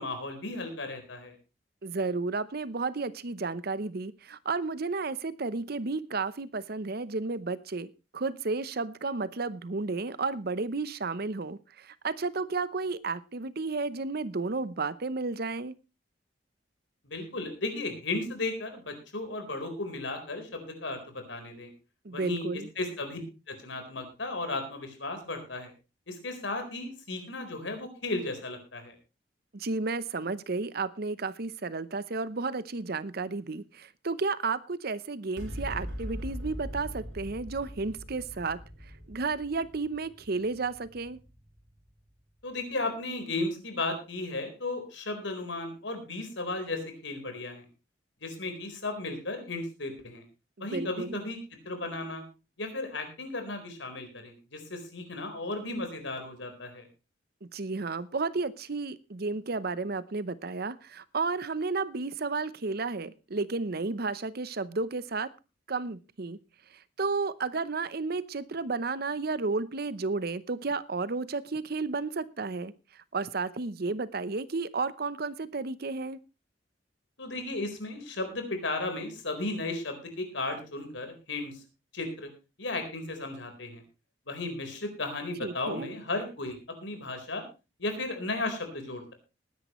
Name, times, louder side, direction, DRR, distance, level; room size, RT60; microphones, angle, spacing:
voice 1, 0.0-1.3 17.0-21.7 22.1-23.2 23.5-25.7 26.1-28.9 42.4-47.6 48.2-50.2 50.6-51.4 51.7-52.2 52.6-56.9 77.2-81.6 81.9-82.3 82.6-83.8 84.3-87.4 87.8-89.1, left 2 dB, 80° left, 6 dB, 4.2 m, -35 dB
voice 2, 1.8-15.7 22.0-22.7 29.5-38.6 39.1-41.2 50.6-51.2 57.4-65.3 65.7-66.4 66.7-76.2 85.4-85.9, right 3 dB, 55° right, 16 dB, 0.8 m, -32 dB
sound 1, 35.4-42.0, equal, 85° right, 5.0 m, -41 dB
19.5 x 10.5 x 3.1 m, 0.28 s
head